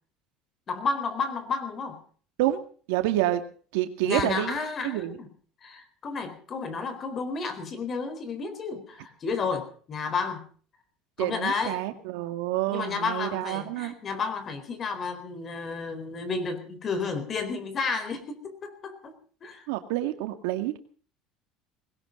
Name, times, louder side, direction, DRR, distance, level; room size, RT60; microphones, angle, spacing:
voice 1, 0.7-2.0 4.0-5.3 5.6-10.5 11.2-11.8 12.7-19.1 19.4-19.7, left 4 dB, 35° left, 10 dB, 4.2 m, -32 dB
voice 2, 2.9-3.4 3.7-4.5 4.8-5.2 11.2-13.9 19.7-20.8, right 15 dB, 85° right, 8 dB, 2.1 m, -28 dB
20.5 x 17.5 x 3.9 m, 0.43 s
cardioid pair, 130°, 0 cm